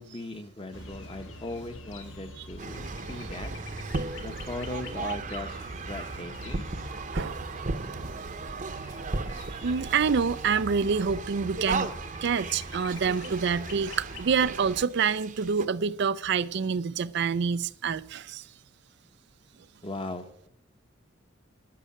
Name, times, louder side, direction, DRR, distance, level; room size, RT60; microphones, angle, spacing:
voice 1, 0.0-3.5 4.2-6.6 19.8-20.5, left 2 dB, 30° left, 1.1 m, -38 dB
sound 1, 0.7-14.6, left 2 dB, 80° left, 1.5 m, -47 dB
sound 2, 2.6-15.7, right 3 dB, 40° right, 0.9 m, -36 dB
voice 2, 7.1-7.4 7.9-8.1 9.6-11.9 12.2-18.5, right 6 dB, 60° right, 0.5 m, -27 dB
11.5 x 7.6 x 9.9 m
head